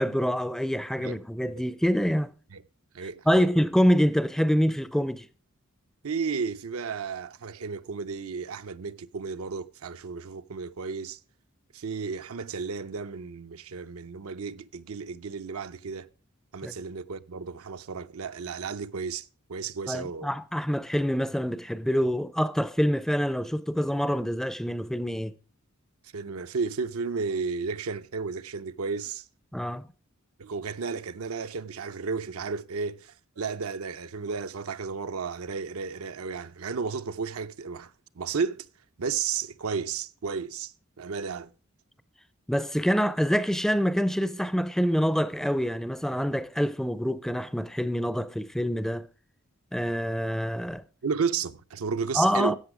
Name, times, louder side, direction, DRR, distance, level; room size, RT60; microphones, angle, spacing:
voice 1, 0.0-2.3 3.3-5.3 16.6-16.7 19.9-25.3 29.5-29.8 42.5-49.0 49.7-50.8 52.2-52.6, equal, ahead, 0.4 m, -26 dB
voice 2, 2.9-3.5 6.0-11.2 11.7-16.1 16.5-20.3 26.1-29.3 30.4-38.7 39.0-41.5 51.0-52.6, right 5 dB, 80° right, 0.6 m, -33 dB
13.0 x 8.1 x 4.8 m
head